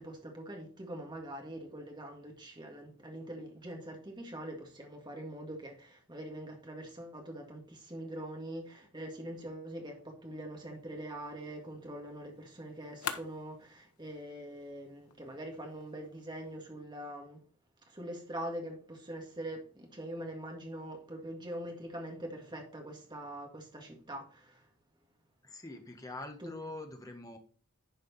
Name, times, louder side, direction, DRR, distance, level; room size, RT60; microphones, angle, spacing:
voice 1, 0.0-17.4 17.8-24.7 26.4-26.5, right 1 dB, 20° right, 1.8 m, -43 dB
sound 1, 10.7-16.6, left 7 dB, 90° left, 1.1 m, -48 dB
voice 2, 25.4-27.4, left 2 dB, 15° left, 1.4 m, -44 dB
10.5 x 4.9 x 4.2 m
head